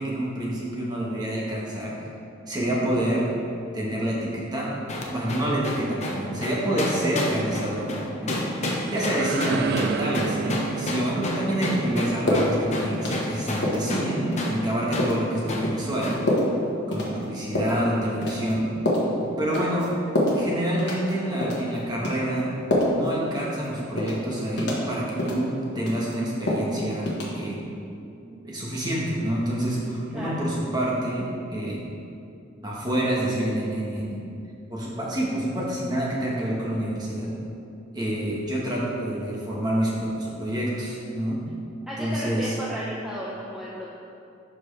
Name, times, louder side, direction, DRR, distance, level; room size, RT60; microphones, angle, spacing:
voice 1, 0.0-2.0 2.5-3.3 3.7-4.7 5.1-7.9 8.2-16.2 16.9-18.7 19.4-19.9 20.3-22.5 22.8-25.5 25.7-27.6 28.4-31.9 32.6-34.2 34.7-37.3 37.9-41.4 42.0-42.5, right 1 dB, 20° right, -5 dB, 1.3 m, -27 dB
sound 1, 4.9-14.1 14.4-14.6 14.9-15.1 15.5-15.7 16.0-16.2, left 1 dB, 35° left, 0.9 m, -29 dB
sound 2, 8.5-14.1, right 5 dB, 50° right, 0.3 m, -33 dB
sound 3, 12.3-12.5 12.9-13.3 13.6-13.9 14.3-14.5 15.0-15.2 15.6-15.8 16.3-16.5 16.9-17.1 17.6-17.8 18.2-18.5 18.9-19.1 19.5-19.9 20.2-20.4 20.8-21.1 21.4-21.6 22.0-22.2 22.7-23.1 23.4-23.5 24.0-24.2 24.6-24.8 25.2-25.4 25.8-26.1 26.5-26.7 27.1-27.2, left 1 dB, 60° left, 1.4 m, -25 dB
voice 2, 27.3-28.4 30.1-30.5 41.9-43.9, equal, 5° right, -7 dB, 0.6 m, -35 dB
11.5 x 4.5 x 3.3 m, 2.6 s
head